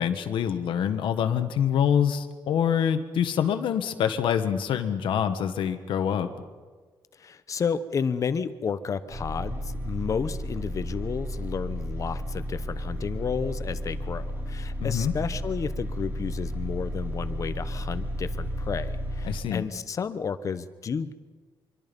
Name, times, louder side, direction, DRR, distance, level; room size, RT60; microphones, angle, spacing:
voice 1, 0.0-6.3 14.8-15.1 19.2-19.6, left 8 dB, 80° left, 8 dB, 1.5 m, -25 dB
voice 2, 7.2-21.1, left 6 dB, 40° left, 12 dB, 1.0 m, -31 dB
sound 1, 9.1-19.4, equal, 30° right, 5.1 m, -33 dB
25.5 x 23.0 x 5.4 m, 1.4 s
cardioid pair, 145°, 8 cm